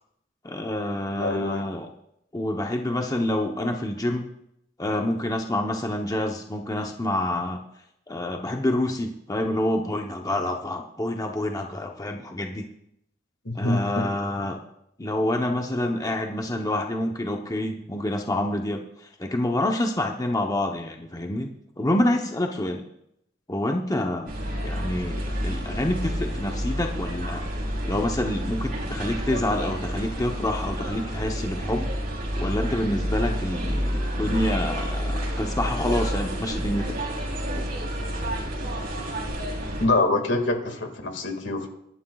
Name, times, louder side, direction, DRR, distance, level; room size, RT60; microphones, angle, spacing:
voice 1, 0.4-1.9 2.3-4.3 4.8-7.6 8.1-12.7 13.5-14.6 15.0-18.8 19.2-21.5 21.8-22.8 23.5-24.3 24.6-27.4 27.8-31.9 32.4-37.0, left 1 dB, 20° left, 2 dB, 0.8 m, -27 dB
voice 2, 1.1-1.6 13.5-14.1 39.8-41.7, left 2 dB, 70° left, 5 dB, 2.0 m, -25 dB
sound 1, 24.3-39.9, equal, 50° right, 3.3 m, -29 dB
24.0 x 11.5 x 2.4 m, 0.78 s
head